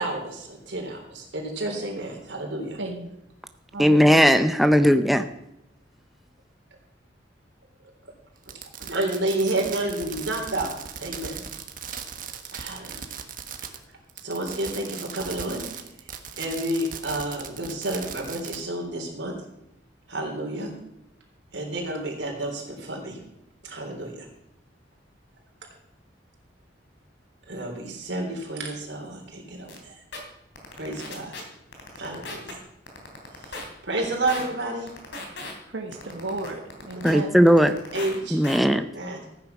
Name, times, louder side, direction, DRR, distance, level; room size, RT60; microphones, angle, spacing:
voice 1, 0.0-2.8 8.8-10.7 11.0-11.4 12.5-13.2 13.6-13.7 14.2-15.6 16.4-19.3 20.1-20.7 21.5-23.2 23.6-24.3 27.5-30.0 30.7-31.3 31.9-32.6 33.4-34.9 36.9-37.2 37.9-38.4 38.9-39.2, right 1 dB, 70° right, 0 dB, 3.7 m, -30 dB
voice 2, 2.8-3.1 3.7-4.0 35.7-37.3, right 2 dB, 85° right, 2 dB, 1.5 m, -34 dB
voice 3, 3.8-5.2 37.0-37.7 38.3-38.8, equal, ahead, 8 dB, 0.5 m, -17 dB
Fireworks, 8.4-13.8 14.1-18.6, right 8 dB, 50° right, 1.3 m, -38 dB
sound 1, 29.7-29.8 30.1-30.2 30.6-31.4 31.7-32.5 32.9-33.7 34.0-34.4 34.9-35.5 35.9-37.1 37.5-38.2 38.4-38.6, left 2 dB, 70° left, 3.2 m, -36 dB
14.5 x 9.5 x 5.9 m, 0.84 s
head